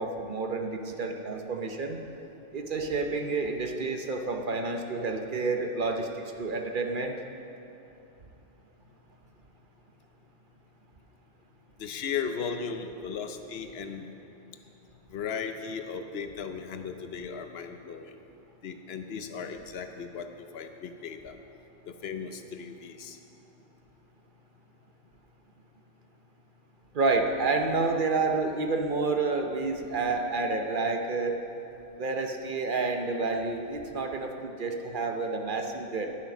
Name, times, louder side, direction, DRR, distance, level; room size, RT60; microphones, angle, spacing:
voice 1, 0.0-2.0 2.5-7.2 26.9-31.4 32.0-36.1, right 3 dB, 50° right, 4 dB, 0.9 m, -29 dB
voice 2, 11.8-14.0 15.1-18.2 18.6-20.3 20.5-21.3 21.9-23.2, left 6 dB, 65° left, 7 dB, 1.0 m, -36 dB
11.0 x 9.1 x 6.0 m, 2.8 s
omnidirectional pair, 1.2 m